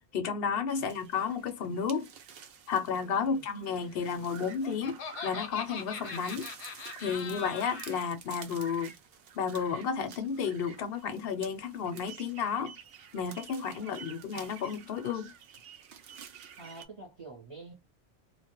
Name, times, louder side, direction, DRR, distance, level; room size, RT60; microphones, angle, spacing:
voice 1, 0.1-2.1 2.7-6.5 7.0-8.9 9.4-12.7 13.1-15.3, left 6 dB, 65° left, 0.7 m, -32 dB
sound 1, 0.7-16.9, right 7 dB, 65° right, 0.7 m, -50 dB
Laughter, 4.2-8.0, left 6 dB, 90° left, 0.9 m, -41 dB
voice 2, 13.8-14.5 16.6-17.7, right 3 dB, 35° right, 0.8 m, -49 dB
2.2 x 2.1 x 2.9 m
omnidirectional pair, 1.1 m